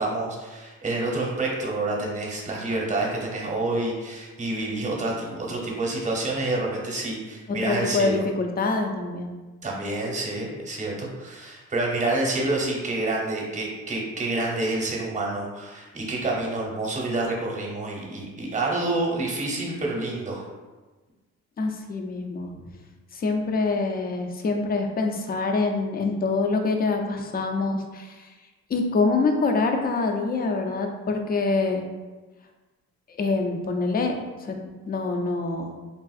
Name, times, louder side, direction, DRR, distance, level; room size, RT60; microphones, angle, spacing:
voice 1, 0.0-8.2 9.6-20.4, right 2 dB, 25° right, -2 dB, 0.8 m, -28 dB
voice 2, 7.6-9.4 21.6-22.5 23.1-28.3 28.7-31.8 33.1-34.6 34.9-35.7, left 3 dB, 30° left, 3 dB, 0.4 m, -25 dB
3.5 x 2.4 x 2.4 m, 1.3 s
cardioid pair, 90°, 30 cm